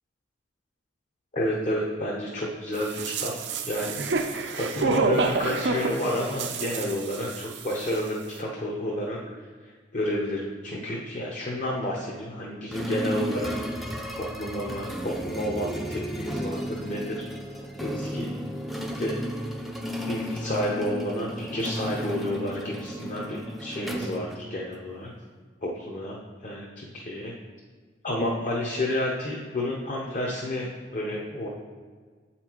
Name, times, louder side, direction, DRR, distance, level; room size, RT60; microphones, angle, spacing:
voice 1, 1.3-4.0 4.6-13.5 14.2-17.2 17.8-18.3 19.0-19.2 20.1-25.1 25.6-27.3 28.0-31.5, left 1 dB, 45° left, -3 dB, 0.8 m, -30 dB
sound 1, 2.8-7.6 7.9-8.0, right 3 dB, 70° right, 0.6 m, -28 dB
sound 2, 12.7-25.0, equal, ahead, 0.5 m, -34 dB
7.9 x 4.3 x 4.5 m, 1.5 s
head